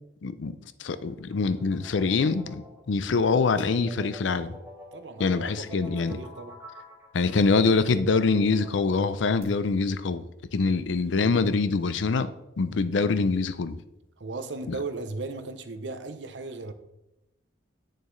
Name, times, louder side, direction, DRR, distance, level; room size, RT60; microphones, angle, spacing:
voice 1, 0.2-0.5 0.8-4.6 5.2-6.2 7.1-10.2 10.5-12.3 12.6-13.8 14.7-14.8, left 4 dB, 80° left, 0.5 m, -24 dB
sound 1, 1.0-9.4, left 1 dB, 15° right, 1.8 m, -48 dB
voice 2, 4.9-6.6 14.2-16.7, right 3 dB, 70° right, 0.7 m, -37 dB
8.7 x 6.6 x 3.2 m
head